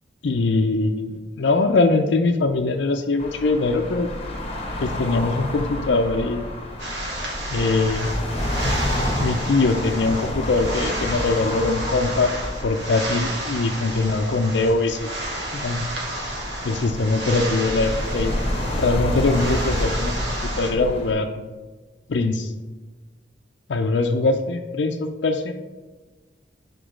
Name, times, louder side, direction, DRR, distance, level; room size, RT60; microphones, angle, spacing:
voice 1, 0.2-1.1 1.4-4.1 4.8-6.5 7.5-8.2 9.2-12.3 12.6-15.1 15.5-15.8 16.6-18.3 18.8-21.4 22.1-22.5 23.7-25.5, left 3 dB, 75° left, 4 dB, 0.5 m, -22 dB
sound 1, 3.2-21.1, left 1 dB, 35° left, 1.1 m, -29 dB
sound 2, 6.8-20.7, right 1 dB, 75° right, 1.8 m, -32 dB
5.0 x 4.6 x 6.0 m, 1.3 s
head